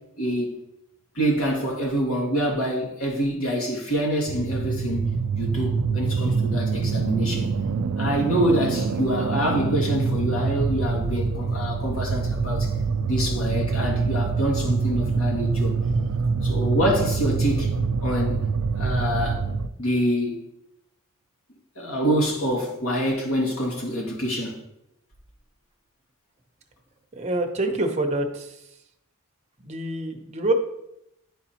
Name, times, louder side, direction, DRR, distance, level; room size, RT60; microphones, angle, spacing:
voice 1, 0.2-0.6 1.2-7.5 8.0-12.7 13.1-15.7 16.4-17.7 18.0-18.5 18.8-19.4 19.8-20.5 21.8-24.6, equal, 70° left, 1.9 m, -26 dB
sound 1, 4.3-19.7, right 4 dB, 85° right, 0.4 m, -25 dB
voice 2, 27.1-28.6 29.6-30.5, right 2 dB, 30° right, 0.8 m, -26 dB
11.0 x 4.1 x 2.8 m
head